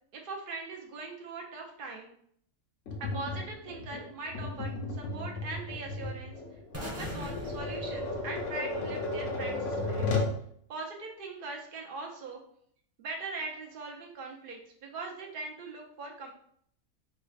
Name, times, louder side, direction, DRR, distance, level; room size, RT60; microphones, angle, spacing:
voice 1, 0.1-2.1 3.0-6.4 6.8-10.3 10.7-12.4 13.0-16.3, right 3 dB, 50° right, 1 dB, 0.7 m, -41 dB
Tap, 2.9-10.4, left 2 dB, 65° left, 1.0 m, -34 dB
sound 1, 6.7-8.8, equal, 15° right, 0.7 m, -41 dB
5.0 x 2.1 x 2.4 m, 0.65 s
omnidirectional pair, 1.5 m